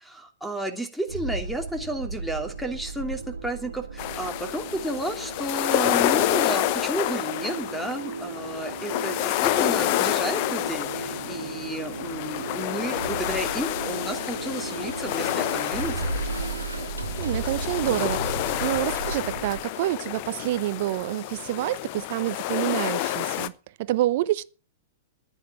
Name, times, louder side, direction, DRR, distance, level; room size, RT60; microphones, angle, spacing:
voice 1, 0.2-16.1, right 1 dB, ahead, 2.8 m, -32 dB
sound 1, 1.1-19.6, right 3 dB, 90° right, 1.9 m, -35 dB
sound 2, 4.0-23.5, left 15 dB, 50° left, 0.8 m, -29 dB
voice 2, 17.2-23.5 23.8-24.4, right 16 dB, 55° right, 0.8 m, -27 dB
11.0 x 10.0 x 7.6 m
figure-of-eight pair, 105°, 0 cm